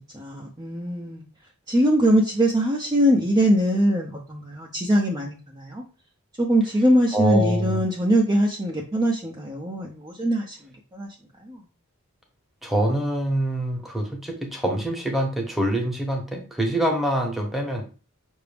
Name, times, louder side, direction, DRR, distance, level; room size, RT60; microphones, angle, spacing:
voice 1, 0.1-1.2 1.7-5.8 6.4-11.6, equal, 20° right, -2 dB, 0.6 m, -22 dB
voice 2, 7.1-7.8 12.6-17.8, right 1 dB, ahead, 0 dB, 1.0 m, -25 dB
5.8 x 2.6 x 3.3 m, 0.35 s
head